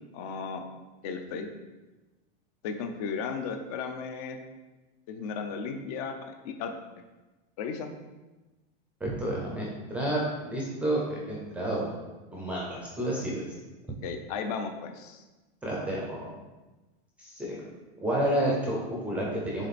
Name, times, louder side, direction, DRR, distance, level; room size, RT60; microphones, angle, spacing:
voice 1, 0.1-0.6 1.0-1.5 2.6-4.4 5.1-6.7 7.6-7.9 14.0-15.2, left 5 dB, 40° left, 5 dB, 0.6 m, -35 dB
voice 2, 9.0-11.9 12.3-13.5 15.6-16.3 17.2-17.6 18.0-19.7, right 1 dB, 5° right, -4 dB, 0.6 m, -30 dB
7.3 x 3.4 x 4.1 m, 1.2 s
supercardioid pair, 180°, 30 cm